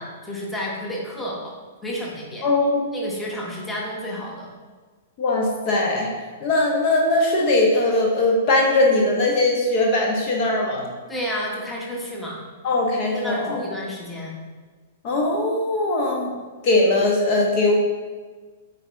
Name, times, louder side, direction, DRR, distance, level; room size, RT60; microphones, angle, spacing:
voice 1, 0.0-1.5 1.8-2.5 2.9-4.5 11.1-12.4 13.1-14.3, equal, 10° left, -3 dB, 1.4 m, -31 dB
voice 2, 2.4-2.9 5.2-6.1 6.4-10.9 12.6-13.6 15.0-16.3 16.6-17.7, left 2 dB, 40° left, -1 dB, 1.2 m, -20 dB
8.7 x 4.2 x 3.6 m, 1.4 s
figure-of-eight pair, 105°, 0 cm